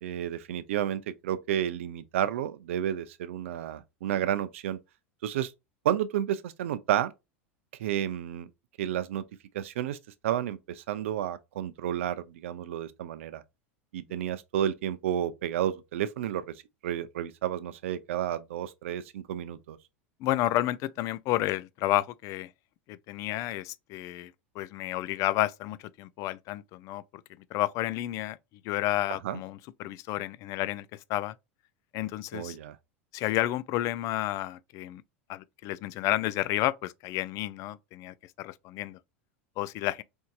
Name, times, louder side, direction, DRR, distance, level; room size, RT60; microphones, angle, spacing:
voice 1, 0.0-4.8 5.2-5.5 5.8-7.1 7.8-8.5 8.8-9.2 9.5-10.0 10.2-13.4 13.9-16.5 16.8-19.8 29.2-29.4 32.3-32.8, right 10 dB, 75° right, 0.5 m, -31 dB
voice 2, 20.2-22.5 22.9-27.0 27.5-28.4 28.6-31.3 31.9-32.6 33.1-35.0 35.3-39.0 39.6-40.0, left 15 dB, 50° left, 0.4 m, -31 dB
4.4 x 2.7 x 2.3 m
hypercardioid pair, 100°, 7 cm